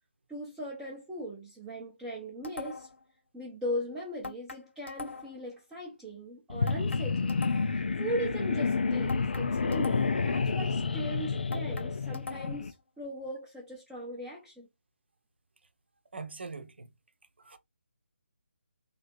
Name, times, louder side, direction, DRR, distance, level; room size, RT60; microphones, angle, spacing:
voice 1, 0.3-2.9 3.3-7.5 8.0-14.7, equal, 5° right, 0.7 m, -39 dB
sound 1, 2.4-3.0 4.2-5.5 6.7-7.9 9.1-10.3 11.5-12.7, left 4 dB, 70° left, 0.9 m, -42 dB
sound 2, 6.5-12.7, left 4 dB, 55° left, 0.5 m, -29 dB
voice 2, 16.1-16.9 17.4-17.6, right 4 dB, 60° right, 0.8 m, -42 dB
3.3 x 2.9 x 4.0 m
figure-of-eight pair, 150°, 7 cm